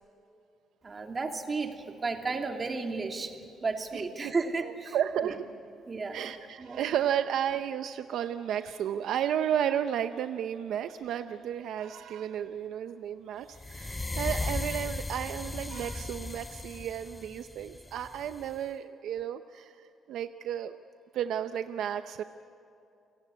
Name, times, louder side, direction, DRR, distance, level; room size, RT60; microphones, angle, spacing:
voice 1, 0.8-5.0 5.2-5.3 5.9-6.3 6.6-6.8, right 4 dB, 35° right, 3 dB, 2.9 m, -33 dB
voice 2, 3.9-4.3 4.6-5.5 6.1-20.7 21.1-22.2, right 9 dB, 80° right, 9 dB, 0.7 m, -33 dB
sound 1, 13.5-18.6, left 2 dB, 20° left, 0.5 m, -36 dB
29.5 x 18.0 x 8.4 m, 2.8 s
cardioid pair, 90°, 0 cm